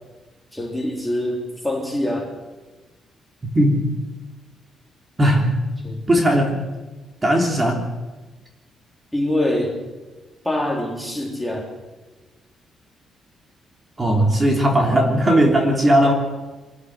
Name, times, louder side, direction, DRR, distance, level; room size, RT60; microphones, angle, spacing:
voice 1, 0.5-2.3 5.8-6.1 9.1-9.8 10.4-11.8, left 1 dB, 5° left, 0 dB, 3.5 m, -24 dB
voice 2, 3.4-3.9 5.2-5.6 6.1-6.6 7.2-7.9 14.0-16.1, right 1 dB, 20° right, 2 dB, 3.2 m, -17 dB
25.5 x 13.5 x 8.0 m, 1.2 s
cardioid pair, 135°, 0 cm